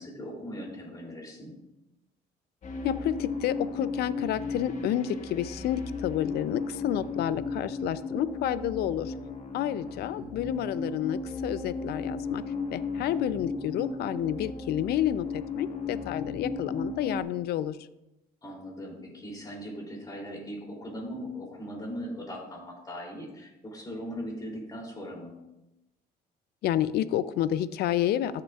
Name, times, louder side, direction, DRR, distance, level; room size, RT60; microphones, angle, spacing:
voice 1, 0.0-1.5 9.8-10.3 18.4-25.3, equal, 20° left, -2 dB, 3.0 m, -39 dB
sound 1, 2.6-17.2, left 4 dB, 45° left, 1.3 m, -35 dB
voice 2, 2.8-9.1 9.5-12.4 12.7-17.8 26.6-28.4, left 11 dB, 70° left, 15 dB, 0.5 m, -30 dB
13.5 x 6.7 x 2.4 m, 0.93 s
cardioid pair, 110°, 17 cm